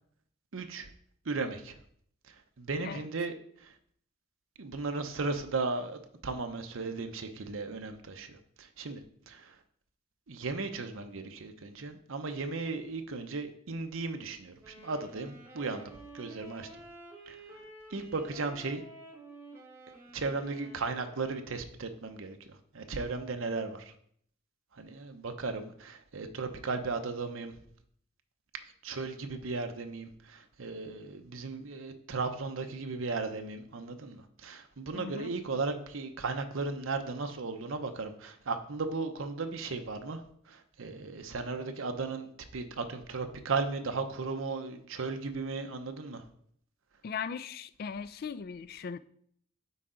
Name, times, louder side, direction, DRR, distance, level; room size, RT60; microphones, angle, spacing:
voice 1, 0.5-0.9 1.3-1.8 2.3-3.3 3.6-3.7 4.6-9.5 10.3-15.8 16.1-16.7 17.3-17.4 17.9-18.8 20.1-23.9 24.7-27.5 28.8-40.2 40.5-46.2, right 3 dB, 75° right, 0.7 m, -36 dB
Wind instrument woodwind instrument, 14.6-21.8, right 2 dB, 10° right, 1.1 m, -51 dB
voice 2, 34.9-35.3 47.0-49.0, left 6 dB, 45° left, 0.3 m, -38 dB
8.2 x 4.6 x 3.8 m
head